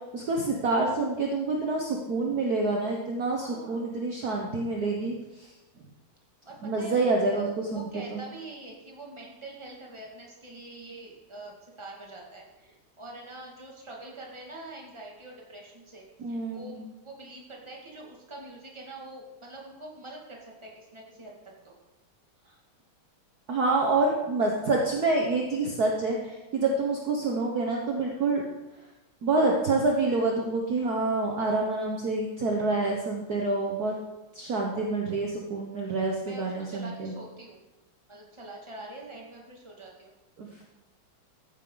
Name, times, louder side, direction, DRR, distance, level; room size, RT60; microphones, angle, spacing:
voice 1, 0.1-5.5 6.6-8.2 16.2-16.8 23.5-28.4 29.2-33.9 34.3-37.1 40.4-40.6, right 3 dB, 50° right, 0 dB, 1.5 m, -27 dB
voice 2, 3.3-3.9 6.4-7.1 7.7-21.8 36.2-37.6 38.1-40.1, right 2 dB, 15° right, -2 dB, 2.2 m, -44 dB
14.5 x 9.7 x 4.0 m, 1.0 s
omnidirectional pair, 2.4 m